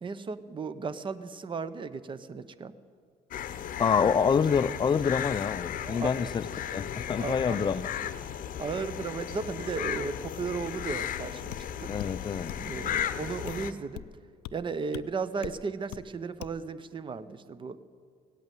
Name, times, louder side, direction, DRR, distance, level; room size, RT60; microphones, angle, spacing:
voice 1, 0.0-2.7 5.8-6.3 7.1-7.8 8.6-11.9 12.6-14.1 14.5-17.8, right 5 dB, 30° right, 0.7 m, -35 dB
sound 1, 3.3-13.7, left 10 dB, 55° left, 0.8 m, -35 dB
voice 2, 3.8-6.5 6.7-7.9 11.9-12.5, left 6 dB, 25° left, 0.4 m, -26 dB
sound 2, 11.5-11.7 12.0-12.2 12.5-12.7 13.0-13.1 13.5-13.6 14.0-14.1 14.4-14.6 14.9-15.1 15.4-15.6 15.9-16.1 16.4-16.6, left 14 dB, 85° left, 0.5 m, -41 dB
17.0 x 8.6 x 9.2 m
cardioid pair, 110°, 17 cm